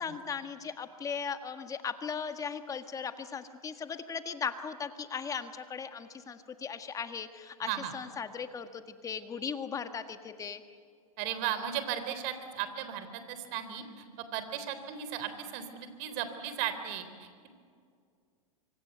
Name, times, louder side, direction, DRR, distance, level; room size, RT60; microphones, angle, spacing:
voice 1, 0.0-10.6, left 6 dB, 20° left, 9 dB, 1.7 m, -38 dB
voice 2, 11.2-14.0 14.3-17.3, right 10 dB, 45° right, 10 dB, 3.7 m, -36 dB
25.0 x 25.0 x 8.1 m, 2.2 s
hypercardioid pair, 130°, 19 cm